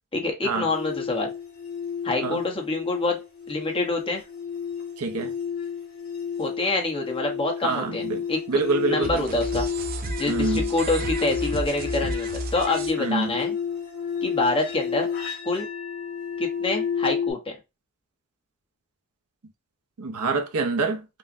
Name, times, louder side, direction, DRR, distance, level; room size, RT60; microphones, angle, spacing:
voice 1, 0.1-1.3 2.0-3.2 3.5-4.2 6.4-8.0 8.3-8.4 8.9-9.7 10.2-13.5 14.2-15.1 15.4-15.7 16.4-17.6, left 2 dB, 25° left, 1.0 m, -26 dB
sound 1, 0.7-17.3, left 7 dB, 45° left, 1.7 m, -31 dB
voice 2, 5.0-5.3 7.6-9.2 10.3-10.7 13.0-13.4 20.0-21.1, right 3 dB, 80° right, 0.6 m, -26 dB
sound 2, 9.0-12.9, right 2 dB, 40° right, 0.5 m, -32 dB
5.4 x 2.1 x 2.6 m
head